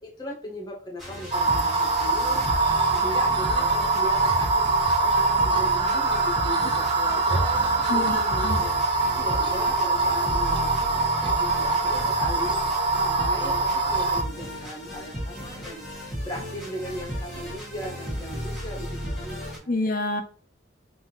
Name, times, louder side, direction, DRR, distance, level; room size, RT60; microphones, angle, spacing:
voice 1, 0.0-15.8 16.2-19.9, equal, 20° left, 0 dB, 1.1 m, -38 dB
sound 1, 1.0-19.6, equal, ahead, 1.5 m, -35 dB
sound 2, 1.3-14.2, right 3 dB, 25° right, 0.5 m, -23 dB
voice 2, 7.9-8.6 19.7-20.2, left 2 dB, 45° left, 5 dB, 0.6 m, -27 dB
5.7 x 2.7 x 2.9 m, 0.43 s
head